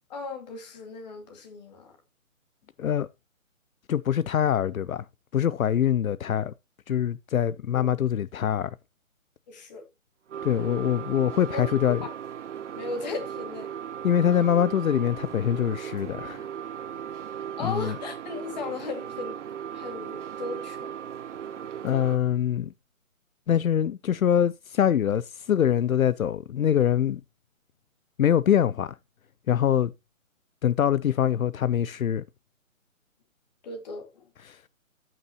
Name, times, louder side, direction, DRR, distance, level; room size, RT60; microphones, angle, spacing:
voice 1, 0.1-1.9 7.8-7.9 9.5-9.8 11.5-11.7 12.0-12.1 12.7-13.7 17.6-19.4 19.7-20.9 33.6-34.3, left 4 dB, 30° left, 2.1 m, -36 dB
voice 2, 3.9-5.0 5.3-6.5 6.9-8.8 10.4-12.0 14.0-16.4 17.6-17.9 21.8-22.7 23.5-27.2 28.2-28.9 29.5-29.9 30.6-32.2 34.4-34.6, left 9 dB, 75° left, 0.6 m, -24 dB
sound 1, 10.3-22.2, right 9 dB, 60° right, 0.5 m, -37 dB
14.0 x 6.0 x 2.9 m
figure-of-eight pair, 150°, 41 cm